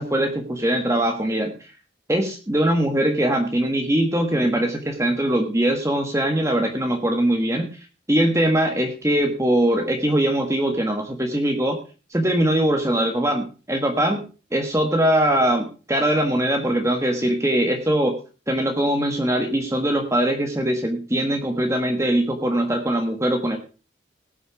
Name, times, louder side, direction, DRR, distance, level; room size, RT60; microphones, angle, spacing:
voice 1, 0.0-1.5 2.1-11.8 12.1-14.2 14.5-18.1 18.5-23.6, right 1 dB, 15° right, 3 dB, 1.3 m, -21 dB
18.5 x 6.4 x 5.0 m, 0.35 s
head